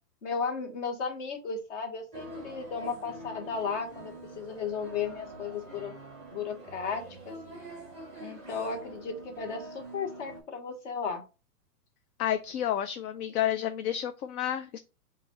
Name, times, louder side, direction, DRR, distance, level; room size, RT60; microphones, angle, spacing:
voice 1, 0.2-5.9 6.3-7.3 8.2-11.2, left 5 dB, 45° left, 4 dB, 1.2 m, -35 dB
sound 1, 2.1-10.4, right 1 dB, 5° left, 0.6 m, -45 dB
voice 2, 12.2-14.8, left 11 dB, 65° left, 10 dB, 0.5 m, -30 dB
5.6 x 2.4 x 2.9 m, 0.31 s
hypercardioid pair, 150°, 48 cm